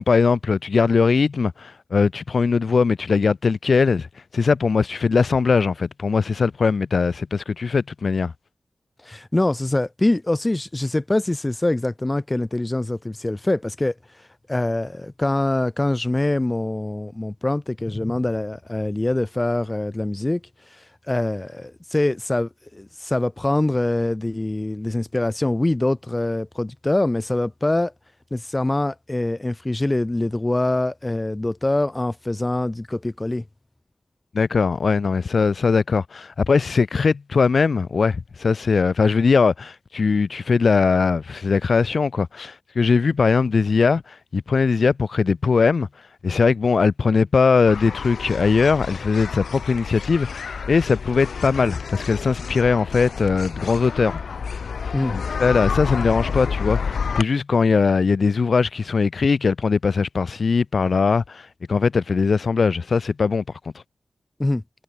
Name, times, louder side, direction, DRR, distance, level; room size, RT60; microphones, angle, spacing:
voice 1, 0.0-4.1 4.3-8.3 34.3-45.9 46.2-54.2 55.1-63.4, left 4 dB, 65° left, 1.4 m, -20 dB
voice 2, 9.0-13.9 14.5-20.4 21.1-27.9 28.3-33.4 54.9-55.2 64.4-64.6, left 2 dB, 20° left, 1.8 m, -24 dB
sound 1, 47.7-57.2, left 6 dB, 85° left, 2.1 m, -29 dB
wide cardioid pair, 90°, 0 cm